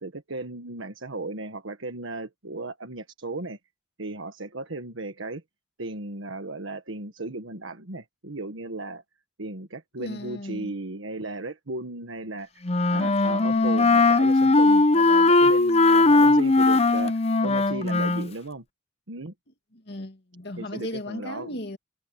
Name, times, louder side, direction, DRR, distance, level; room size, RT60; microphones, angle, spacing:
voice 1, 0.0-3.6 4.0-5.4 5.8-9.0 9.4-12.5 12.9-18.6 19.1-19.3 20.6-21.6, right 2 dB, 90° right, 1.5 m, -36 dB
voice 2, 10.0-10.7 12.9-13.9 19.7-21.8, left 1 dB, 55° left, 2.4 m, -37 dB
Wind instrument woodwind instrument, 12.6-18.3, left 3 dB, 30° left, 0.6 m, -19 dB
head